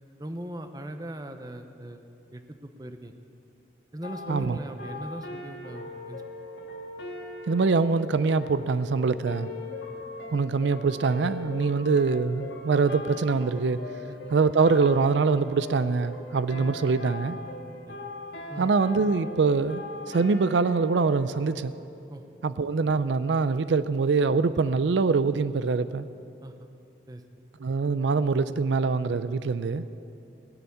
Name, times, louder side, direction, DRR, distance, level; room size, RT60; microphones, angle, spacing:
voice 1, 0.2-2.0 2.3-3.2 3.9-6.2 14.1-14.4 17.7-18.0 18.5-18.7 22.1-22.2 26.4-26.7 27.1-27.2, right 1 dB, 20° right, 7 dB, 0.7 m, -39 dB
sound 1, 4.0-21.6, left 2 dB, 80° left, 1.8 m, -40 dB
voice 2, 7.5-9.5 10.3-13.8 14.3-17.4 18.6-19.8 20.1-21.7 22.4-26.1 27.6-29.8, right 4 dB, 90° right, 14 dB, 0.4 m, -24 dB
19.0 x 7.0 x 8.5 m, 2.7 s
head